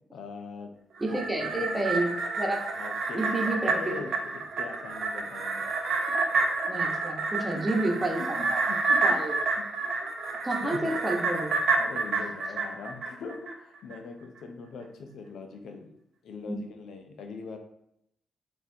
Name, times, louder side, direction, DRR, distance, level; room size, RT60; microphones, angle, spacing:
voice 1, 0.1-0.7 1.1-2.0 2.7-5.7 6.2-6.3 7.5-7.6 8.2-9.2 9.6-9.7 10.2-10.9 11.7-15.9 16.2-17.6, left 4 dB, 75° left, 5 dB, 0.5 m, -42 dB
voice 2, 1.0-2.1 2.4-2.6 3.1-3.9 6.7-8.6 9.0-9.4 10.4-11.6 16.5-16.6, right 1 dB, 20° right, 0 dB, 1.0 m, -30 dB
sound 1, 1.0-13.5 13.9-14.0, right 3 dB, 65° right, 0.6 m, -29 dB
4.0 x 2.5 x 2.7 m, 0.76 s
hypercardioid pair, 45°, 0 cm